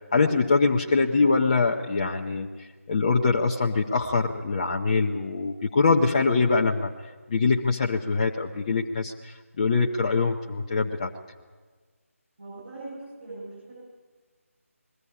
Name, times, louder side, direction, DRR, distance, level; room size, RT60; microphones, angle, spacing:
voice 1, 0.1-6.9 7.3-11.1, left 4 dB, 25° left, -1 dB, 0.8 m, -23 dB
voice 2, 12.4-13.8, right 2 dB, 45° right, -6 dB, 7.9 m, -41 dB
21.5 x 15.5 x 8.5 m, 1.4 s
figure-of-eight pair, 155°, 8 cm